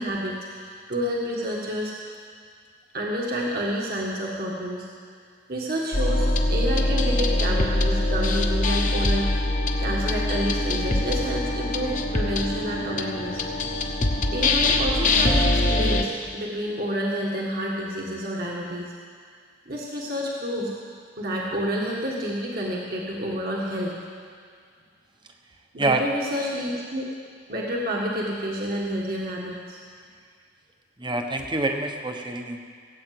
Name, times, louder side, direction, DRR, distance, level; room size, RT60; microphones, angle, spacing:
voice 1, 0.0-1.9 2.9-4.9 5.5-9.3 9.8-13.4 14.3-18.9 19.7-20.7 21.2-24.0 25.7-27.1 27.5-29.8, equal, 50° right, -3 dB, 1.8 m, -29 dB
sound 1, 5.9-16.0, left 2 dB, 40° left, 1.1 m, -23 dB
voice 2, 31.0-32.6, right 2 dB, 25° right, 4 dB, 1.0 m, -26 dB
18.5 x 8.9 x 7.8 m, 2.1 s
head